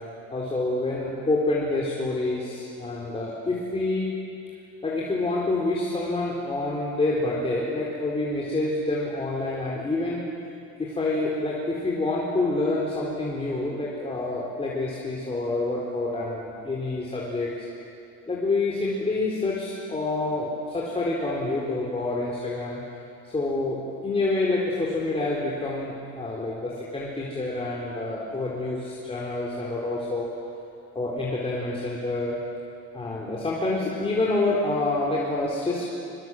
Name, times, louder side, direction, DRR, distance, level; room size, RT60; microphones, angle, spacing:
voice 1, 0.3-4.1 4.8-10.2 10.8-17.7 18.3-22.8 23.3-30.3 30.9-32.4 32.9-35.9, left 2 dB, 20° left, -5 dB, 4.0 m, -27 dB
24.0 x 24.0 x 7.8 m, 2.7 s
cardioid pair, 120°, 32 cm